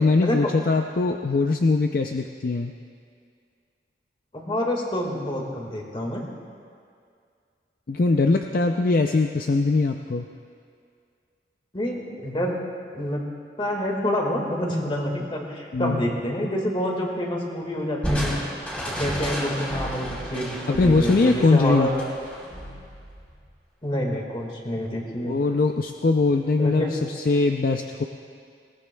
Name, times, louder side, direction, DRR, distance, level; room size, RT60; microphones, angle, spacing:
voice 1, 0.0-2.7 7.9-10.3 15.7-16.0 20.7-21.9 25.3-28.0, left 3 dB, 50° left, 5 dB, 0.4 m, -21 dB
voice 2, 4.3-6.2 11.7-12.6 12.9-13.2 13.6-18.4 18.9-22.0 23.8-25.4 26.6-26.9, equal, 30° left, 0 dB, 1.8 m, -27 dB
Crushing, 18.0-23.4, equal, 5° left, 2.6 m, -31 dB
20.5 x 18.5 x 2.3 m, 2.2 s
head